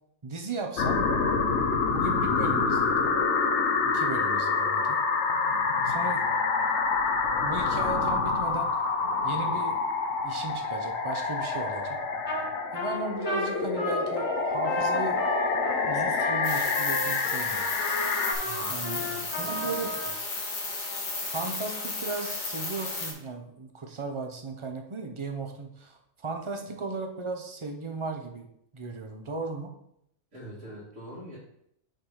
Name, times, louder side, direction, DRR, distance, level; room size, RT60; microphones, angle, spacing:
voice 1, 0.2-1.0 1.9-3.1 3.8-5.0 5.8-6.2 7.4-8.7 9.2-9.8 10.2-12.0 12.7-15.2 15.9-17.6 18.7-19.0 19.4-19.9 21.3-28.5 28.7-29.7, right 3 dB, 30° right, 4 dB, 0.7 m, -36 dB
sound 1, 0.8-18.3, left 4 dB, 65° left, 1.0 m, -27 dB
Trumpet, 12.3-12.5 12.7-20.1, left 1 dB, 40° left, 1.7 m, -34 dB
sound 2, 16.4-23.1, left 3 dB, 85° left, 1.8 m, -34 dB
voice 2, 18.4-20.1 26.6-26.8 30.3-31.4, right 1 dB, 60° right, -10 dB, 2.6 m, -45 dB
6.3 x 4.2 x 4.9 m, 0.74 s
omnidirectional pair, 1.4 m